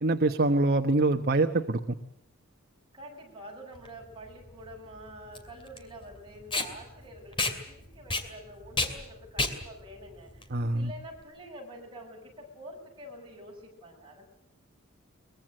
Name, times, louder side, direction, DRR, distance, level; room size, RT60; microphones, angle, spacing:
voice 1, 0.0-1.8 10.5-10.9, right 2 dB, 45° right, 6 dB, 1.1 m, -24 dB
voice 2, 2.9-14.3, equal, 25° right, -1 dB, 7.3 m, -47 dB
Packing tape duct tape, 3.8-11.2, left 2 dB, 25° left, 2.6 m, -33 dB
23.0 x 21.5 x 7.8 m, 0.79 s
head